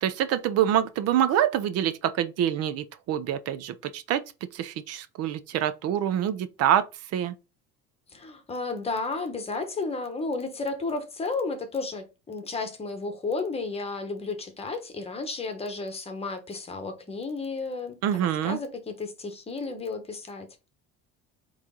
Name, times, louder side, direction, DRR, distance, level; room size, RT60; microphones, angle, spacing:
voice 1, 0.0-4.2 4.5-6.8 7.1-7.3 18.0-18.6, right 10 dB, 55° right, 0.6 m, -26 dB
voice 2, 8.1-20.5, left 3 dB, 20° left, 1.1 m, -33 dB
8.2 x 3.2 x 3.8 m
cardioid pair, 145°, 30 cm